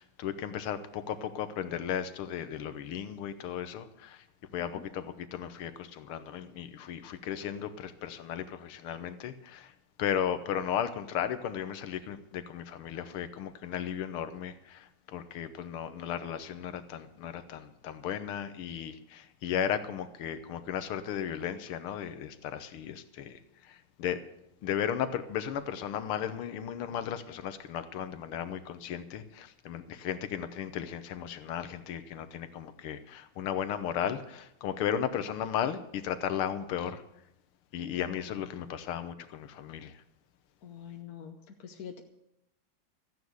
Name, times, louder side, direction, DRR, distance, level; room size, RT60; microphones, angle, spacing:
voice 1, 0.0-4.3 4.5-9.7 10.0-24.2 24.6-37.0 37.7-40.0, left 9 dB, 75° left, 1.9 m, -35 dB
voice 2, 40.6-42.0, left 8 dB, 55° left, 1.2 m, -45 dB
14.0 x 9.6 x 8.0 m
omnidirectional pair, 2.4 m